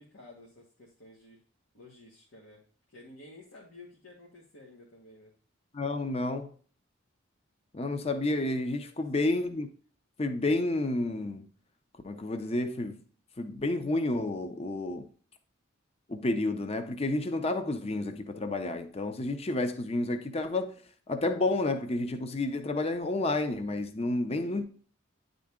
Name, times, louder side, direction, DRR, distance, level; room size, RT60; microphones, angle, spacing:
voice 1, 0.0-1.4 1.7-2.6 2.9-5.3 8.8-9.3 24.3-24.6, left 2 dB, 80° left, 1.5 m, -52 dB
voice 2, 5.7-6.5 7.7-9.7 10.2-11.5 12.0-13.0 13.4-15.1 16.1-20.7 21.1-24.6, left 2 dB, 30° left, 0.5 m, -30 dB
9.4 x 3.8 x 3.6 m
head